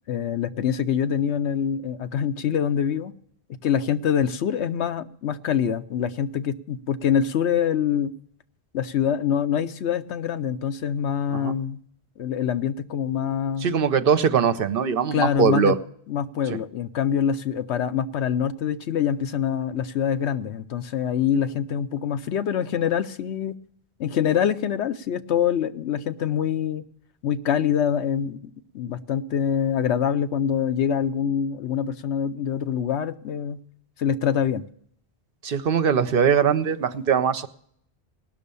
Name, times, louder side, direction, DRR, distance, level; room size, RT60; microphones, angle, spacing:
voice 1, 0.1-3.1 3.5-8.1 8.7-11.8 12.2-13.7 15.1-15.8 16.1-23.6 24.0-26.9 27.2-28.4 28.7-33.6 34.0-34.6, left 8 dB, 85° left, 1.0 m, -25 dB
voice 2, 13.6-15.8 35.4-37.5, right 6 dB, 60° right, 0.8 m, -21 dB
19.0 x 6.4 x 6.9 m
omnidirectional pair, 1.1 m